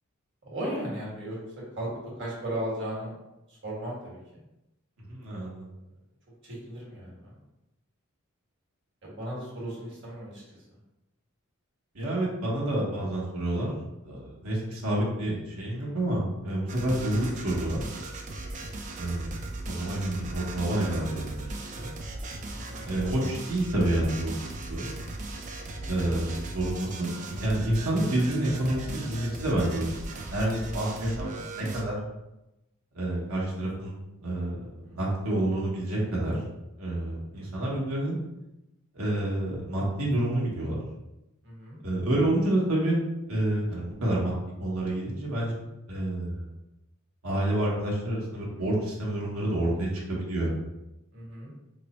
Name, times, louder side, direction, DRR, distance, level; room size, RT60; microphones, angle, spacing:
voice 1, 0.4-1.4 1.8-1.9 2.2-3.1 3.5-4.4 6.4-7.4 9.0-10.4 10.7-10.8 22.5-22.9 26.0-26.3 34.8-35.0 37.3-37.5 41.4-41.8 45.5-45.6 48.3-48.4 49.2-49.5 51.1-51.5, right 1 dB, 55° right, -5 dB, 1.3 m, -37 dB
voice 2, 5.1-5.7 11.9-13.7 14.0-17.8 19.0-19.3 19.7-21.4 21.7-21.9 22.8-24.3 24.7-25.0 25.9-26.3 26.5-31.9 32.9-34.6 34.9-36.4 36.8-38.2 38.9-40.8 41.8-43.0 43.3-44.3 44.6-45.5 45.9-46.4 47.2-50.5, right 1 dB, 80° right, -4 dB, 0.9 m, -28 dB
sound 1, 16.7-31.8, right 2 dB, 35° right, 0.4 m, -38 dB
3.2 x 2.0 x 4.0 m, 0.94 s
head